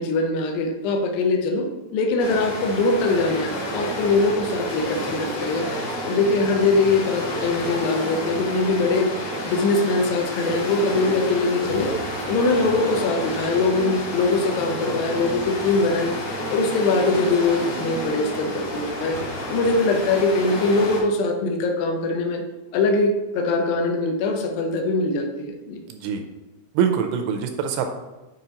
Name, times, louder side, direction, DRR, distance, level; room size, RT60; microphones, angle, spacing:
voice 1, 0.0-5.7 6.0-9.1 9.4-11.9 12.3-16.2 16.5-19.2 19.5-22.4 22.7-25.8, left 3 dB, 80° left, 3 dB, 2.1 m, -22 dB
sound 1, 2.2-21.0, equal, 45° left, 2.6 m, -30 dB
voice 2, 25.9-26.2 26.8-27.9, right 7 dB, 80° right, 5 dB, 2.5 m, -23 dB
7.8 x 5.5 x 2.9 m, 1.1 s
omnidirectional pair, 5.1 m